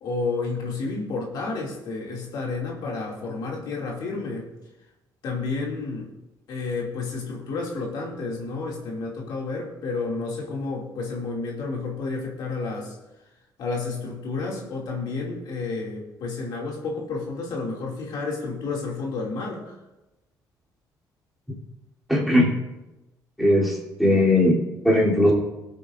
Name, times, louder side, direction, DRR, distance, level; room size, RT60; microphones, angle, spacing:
voice 1, 0.0-4.5 5.2-6.1 6.5-12.9 13.6-19.8, left 3 dB, 70° left, -2 dB, 2.5 m, -30 dB
voice 2, 22.1-22.5 23.4-24.6 24.8-25.3, left 1 dB, ahead, -5 dB, 3.2 m, -19 dB
20.5 x 8.3 x 2.6 m, 1.0 s
cardioid pair, 135°, 8 cm